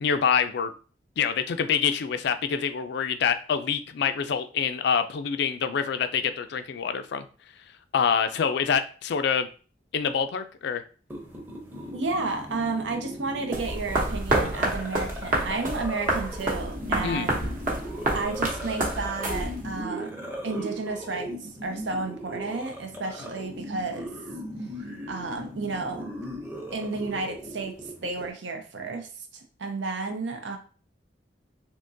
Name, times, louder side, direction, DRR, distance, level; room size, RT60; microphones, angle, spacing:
voice 1, 0.0-0.7 1.2-7.3 7.9-9.5 9.9-10.8 17.0-17.3, left 7 dB, 65° left, 10 dB, 0.4 m, -26 dB
sound 1, 11.1-28.3, equal, 10° right, 0.7 m, -38 dB
voice 2, 11.9-17.4 18.1-24.1 25.1-26.1 26.7-30.6, right 3 dB, 85° right, 5 dB, 0.6 m, -32 dB
sound 2, 13.5-19.8, right 1 dB, 50° right, 0.9 m, -28 dB
3.6 x 2.9 x 2.6 m, 0.38 s
head